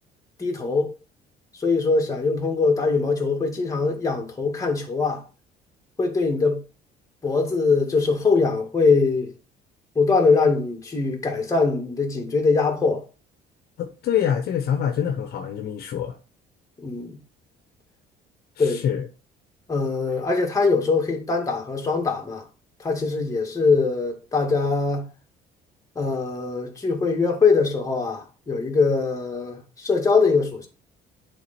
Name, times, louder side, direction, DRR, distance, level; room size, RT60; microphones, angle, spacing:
voice 1, 0.4-0.9 1.6-5.2 6.0-6.6 7.2-9.3 10.0-13.0 16.8-17.2 18.6-18.8 19.7-22.4 22.8-25.1 26.0-30.7, left 4 dB, 20° left, 2.1 m, -22 dB
voice 2, 13.8-16.1 18.6-19.1, left 9 dB, 70° left, 1.0 m, -25 dB
8.1 x 3.9 x 4.3 m
cardioid pair, 110°, 17 cm